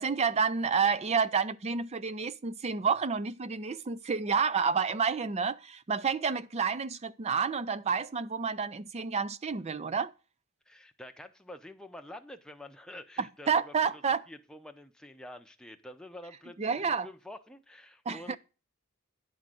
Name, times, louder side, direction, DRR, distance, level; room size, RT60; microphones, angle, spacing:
voice 1, 0.0-10.1 13.2-14.2 16.6-17.1 18.1-18.4, right 5 dB, 30° right, 0.4 m, -29 dB
voice 2, 10.7-14.0 14.3-18.4, left 1 dB, 5° left, 0.7 m, -48 dB
10.5 x 3.9 x 7.6 m
head